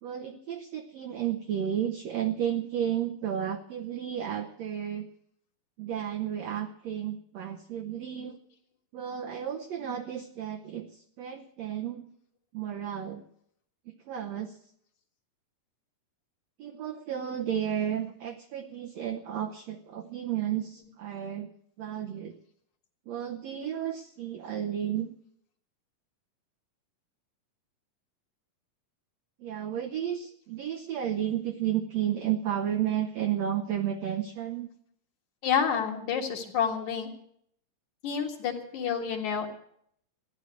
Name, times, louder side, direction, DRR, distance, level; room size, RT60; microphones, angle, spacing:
voice 1, 0.0-5.1 5.8-8.4 8.9-12.1 12.5-13.2 14.0-14.6 16.6-21.5 21.8-22.3 23.1-25.1 29.4-34.7, right 10 dB, 70° right, 4 dB, 1.7 m, -32 dB
voice 2, 35.4-37.1 38.0-39.5, left 7 dB, 65° left, 0 dB, 3.1 m, -29 dB
14.5 x 10.5 x 8.1 m, 0.69 s
omnidirectional pair, 3.8 m